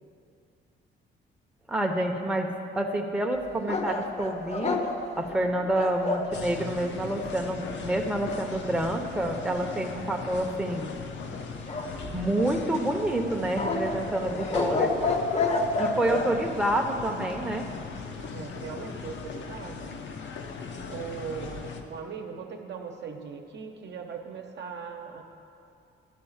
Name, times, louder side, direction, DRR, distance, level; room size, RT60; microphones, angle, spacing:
voice 1, 1.7-4.8 5.2-10.9 12.1-14.9 15.8-17.7, right 1 dB, 5° right, 2 dB, 0.7 m, -28 dB
sound 1, 3.7-6.3 11.7-12.5 13.6-16.3, left 3 dB, 35° left, 0.7 m, -29 dB
sound 2, 6.3-21.8, left 5 dB, 70° left, 0.8 m, -39 dB
voice 2, 16.1-16.6 18.3-20.0 20.8-25.2, right 6 dB, 60° right, 3 dB, 0.9 m, -39 dB
11.0 x 3.9 x 7.2 m, 2.6 s
cardioid pair, 90°, 20 cm